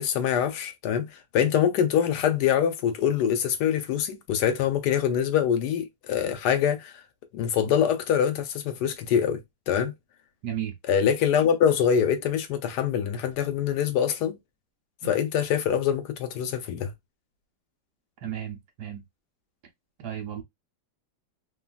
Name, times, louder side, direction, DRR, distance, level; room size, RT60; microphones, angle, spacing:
voice 1, 0.0-6.9 7.3-9.9 10.9-14.4 15.0-16.9, left 8 dB, 75° left, 1.1 m, -24 dB
voice 2, 10.4-10.7 15.0-15.1 18.2-19.0 20.0-20.4, right 10 dB, 65° right, 1.1 m, -34 dB
3.3 x 2.3 x 2.2 m
omnidirectional pair, 2.0 m